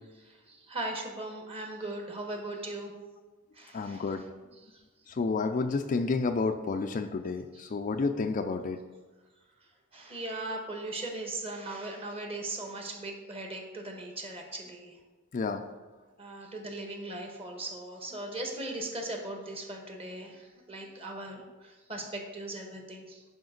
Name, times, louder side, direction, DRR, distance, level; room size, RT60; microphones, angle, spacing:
voice 1, 0.2-2.9 3.5-4.1 4.7-4.8 7.5-7.7 9.9-15.0 16.2-23.2, right 2 dB, 25° right, 2 dB, 1.3 m, -39 dB
voice 2, 3.7-4.2 5.1-8.8 15.3-15.6, left 4 dB, 35° left, 7 dB, 0.4 m, -30 dB
10.5 x 5.0 x 3.9 m, 1.2 s
head